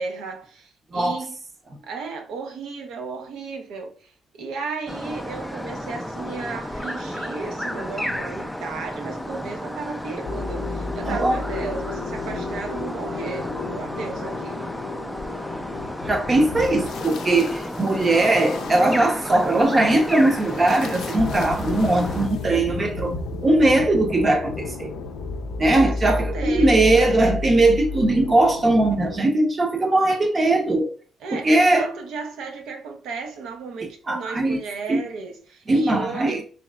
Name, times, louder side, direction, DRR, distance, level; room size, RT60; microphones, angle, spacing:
voice 1, 0.0-1.4 1.8-14.7 25.8-27.2 31.2-36.4, right 4 dB, 85° right, 0.7 m, -34 dB
sound 1, 4.9-22.3, equal, ahead, 0.4 m, -33 dB
sound 2, 10.2-29.2, left 3 dB, 75° left, 0.4 m, -32 dB
voice 2, 11.0-11.4 16.1-23.1 23.4-24.9 25.6-30.9 31.3-31.9 33.8-34.6 34.9-35.0 35.7-36.4, right 2 dB, 30° right, 0.7 m, -20 dB
3.6 x 3.1 x 2.3 m
cardioid pair, 115°, 0 cm